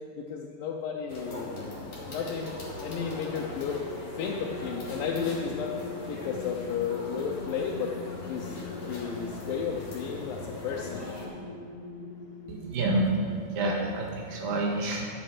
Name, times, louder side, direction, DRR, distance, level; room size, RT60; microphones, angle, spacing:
voice 1, 0.2-1.5 1.9-3.8 4.1-5.7 6.1-7.9 8.2-11.1, left 6 dB, 90° left, -1 dB, 2.5 m, -33 dB
sound 1, 1.1-11.3, left 2 dB, 45° left, 3.5 m, -41 dB
sound 2, 2.6-14.4, left 4 dB, 60° left, 1.9 m, -43 dB
voice 2, 12.5-15.1, right 2 dB, 85° right, -1 dB, 3.3 m, -28 dB
13.5 x 9.0 x 4.9 m, 2.2 s
omnidirectional pair, 3.9 m